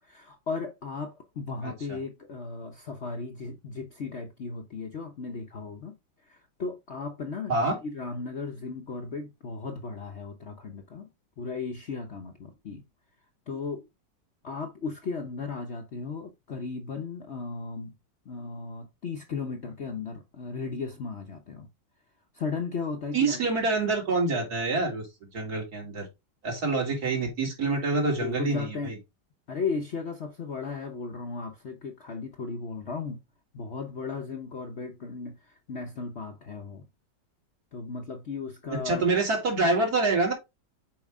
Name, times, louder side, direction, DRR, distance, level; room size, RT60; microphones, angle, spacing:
voice 1, 0.1-6.0 6.3-7.5 7.8-11.1 11.4-12.8 13.5-13.9 14.4-17.9 18.3-21.7 22.3-23.4 28.2-29.0 29.5-33.2 33.5-36.9 37.7-39.0, left 4 dB, 50° left, 0.9 m, -36 dB
voice 2, 1.6-2.0 7.5-7.8 23.1-25.1 25.3-26.1 26.4-29.0 38.7-40.3, right 3 dB, 60° right, 3.3 m, -26 dB
7.6 x 4.8 x 3.6 m
omnidirectional pair, 1.9 m